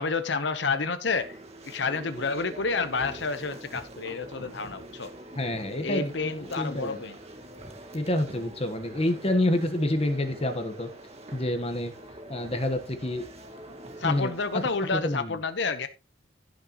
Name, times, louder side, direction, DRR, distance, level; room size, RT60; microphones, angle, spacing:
voice 1, 0.0-5.1 5.8-7.2 14.0-15.9, left 4 dB, 60° left, 0.9 m, -29 dB
sound 1, 1.0-15.0, right 1 dB, 35° right, 2.0 m, -45 dB
voice 2, 5.4-7.0 7.9-10.9 11.3-11.9 12.3-13.2 14.0-14.3 14.9-15.3, left 1 dB, 30° left, 1.3 m, -28 dB
16.0 x 6.5 x 3.0 m
head